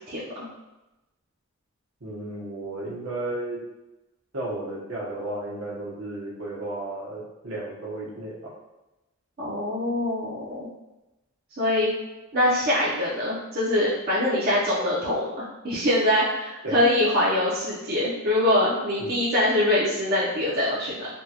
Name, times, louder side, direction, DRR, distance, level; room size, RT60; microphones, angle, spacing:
voice 1, 0.1-0.5 9.4-10.7 11.6-11.9 12.3-21.1, left 1 dB, 45° right, -9 dB, 0.7 m, -24 dB
voice 2, 2.0-3.6 4.3-8.4 16.6-16.8 19.0-19.2, right 2 dB, 70° right, -5 dB, 1.0 m, -33 dB
3.5 x 2.3 x 2.8 m, 1.0 s
head